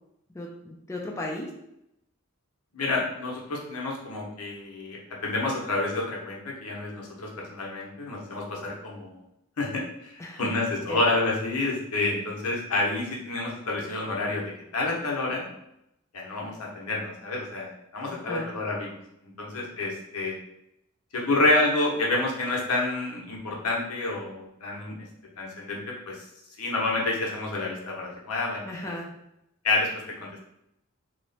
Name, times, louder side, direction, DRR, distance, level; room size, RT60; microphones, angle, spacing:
voice 1, 0.3-1.5 10.2-10.5 10.9-11.0 18.1-18.5 28.7-29.1, left 1 dB, 15° left, -2 dB, 0.3 m, -35 dB
voice 2, 2.7-9.2 9.6-15.5 16.1-20.4 21.1-25.1 25.4-26.2 26.6-28.9 29.6-29.9 30.2-30.4, left 2 dB, 85° left, -2 dB, 0.9 m, -29 dB
3.0 x 2.1 x 3.9 m, 0.82 s
head